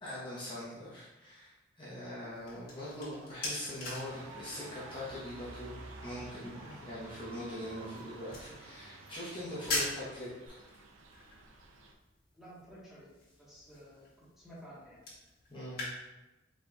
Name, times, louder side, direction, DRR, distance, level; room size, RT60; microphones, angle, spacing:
voice 1, 0.0-10.5 15.5-15.9, left 1 dB, 25° left, -9 dB, 0.9 m, -42 dB
sound 1, 2.1-15.9, left 2 dB, 50° left, 1.5 m, -44 dB
Screaming, 2.6-5.0 5.8-6.1 6.5-8.5 9.1-10.5, right 1 dB, 25° right, 1.3 m, -55 dB
sound 2, 4.0-11.9, right 2 dB, 85° right, 0.5 m, -52 dB
voice 2, 12.3-13.1 13.4-15.0, equal, ahead, -9 dB, 1.3 m, -53 dB
5.0 x 3.9 x 2.3 m, 1.1 s
head